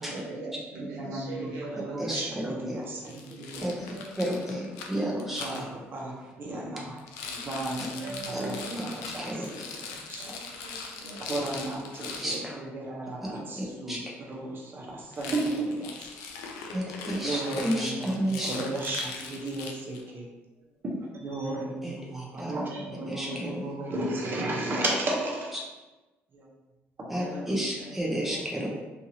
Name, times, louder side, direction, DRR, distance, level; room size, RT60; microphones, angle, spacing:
voice 1, 0.0-2.4 3.5-4.1 5.0-5.2 7.2-7.5 7.9-9.1 10.2-11.2 16.6-17.0 21.4-21.7 22.7-22.8 27.1-28.4, right 2 dB, 80° right, -4 dB, 0.8 m, -41 dB
voice 2, 0.8-3.7 5.4-7.1 7.4-10.4 11.2-16.1 17.2-20.3 20.8-25.6 26.3-26.5 27.0-27.1, right 2 dB, 40° right, -3 dB, 0.8 m, -34 dB
voice 3, 2.0-2.8 3.6-3.7 4.2-5.4 8.3-8.5 8.7-8.8 9.2-9.5 12.2-12.6 13.2-14.0 16.7-18.5 21.8-21.9 22.4-22.5 23.1-23.6 27.1-28.7, equal, 5° right, -4 dB, 0.7 m, -31 dB
Rattle, 3.0-5.6 7.0-12.4 15.1-20.1, left 4 dB, 90° left, 0.4 m, -40 dB
2.7 x 2.5 x 2.7 m, 1.1 s
supercardioid pair, 85°, 5 cm